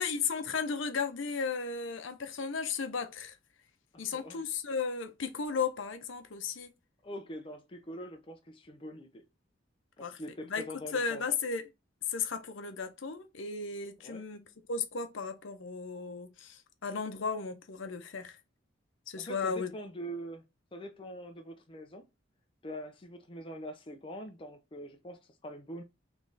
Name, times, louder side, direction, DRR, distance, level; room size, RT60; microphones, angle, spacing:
voice 1, 0.0-3.3 4.0-6.7 10.0-10.2 10.4-10.6 10.9-11.6 12.1-14.4 14.7-18.4 19.1-19.7, left 5 dB, 70° left, 0.7 m, -35 dB
voice 2, 3.9-4.4 7.0-9.2 10.0-11.2 14.0-14.3 19.2-20.4 20.7-22.1 22.6-25.8, equal, 25° left, 0.5 m, -44 dB
3.4 x 3.1 x 3.9 m
head